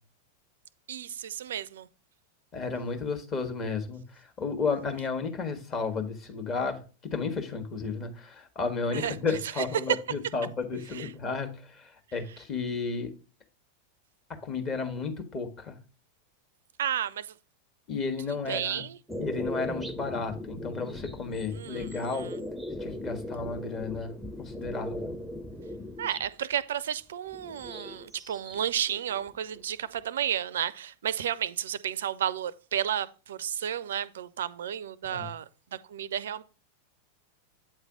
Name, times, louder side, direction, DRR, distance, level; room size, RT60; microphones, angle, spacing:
voice 1, 0.9-1.9 8.9-9.6 10.9-11.1 16.8-17.3 18.5-19.0 21.5-22.4 26.0-36.4, right 10 dB, 60° right, 0.4 m, -32 dB
voice 2, 2.5-6.8 7.1-13.1 14.4-15.7 17.9-18.8 19.2-22.3 22.8-25.2 35.0-35.3, left 4 dB, 30° left, 1.3 m, -33 dB
sound 1, 19.1-26.3 27.3-28.6 28.9-29.9, left 1 dB, 5° right, 0.6 m, -38 dB
8.5 x 3.2 x 5.0 m
figure-of-eight pair, 90°, 0 cm